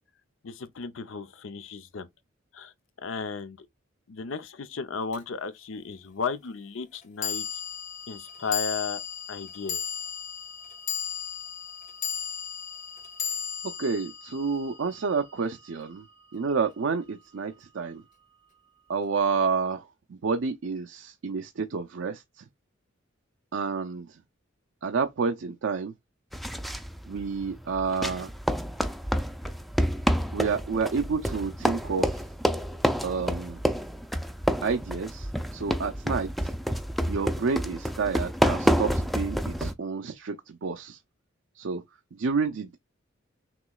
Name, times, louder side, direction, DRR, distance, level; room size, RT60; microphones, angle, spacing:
voice 1, 0.4-2.1 2.5-2.7 3.0-3.7 4.1-7.4 8.1-9.0 9.3-9.8, left 5 dB, 75° left, 0.6 m, -34 dB
sound 1, 5.1-5.2 7.2-15.6, left 8 dB, 40° left, 0.9 m, -35 dB
voice 2, 13.8-16.0 16.3-18.0 18.9-22.5 23.5-24.1 24.8-25.9 27.1-28.3 30.3-32.2 33.0-33.6 34.6-36.5 37.1-41.0 41.6-41.8 42.2-42.8, right 5 dB, 70° right, 0.5 m, -29 dB
sound 2, 26.3-39.7, equal, ahead, 0.4 m, -28 dB
6.0 x 3.0 x 2.3 m
head